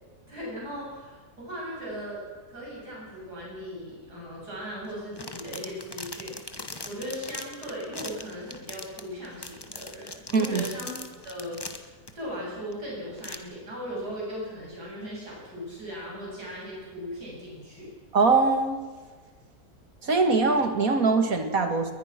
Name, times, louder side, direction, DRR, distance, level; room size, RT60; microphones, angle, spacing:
voice 1, 0.3-2.2 2.5-6.4 6.8-11.0 11.2-17.9, equal, 75° right, -4 dB, 8.0 m, -38 dB
sound 1, 4.9-12.1 12.7-12.8 13.2-13.4, left 2 dB, 15° left, 1.3 m, -40 dB
voice 2, 10.3-10.6 18.1-18.8 20.0-21.9, right 4 dB, 60° right, 6 dB, 2.6 m, -22 dB
21.5 x 20.5 x 6.1 m, 1.4 s
omnidirectional pair, 1.7 m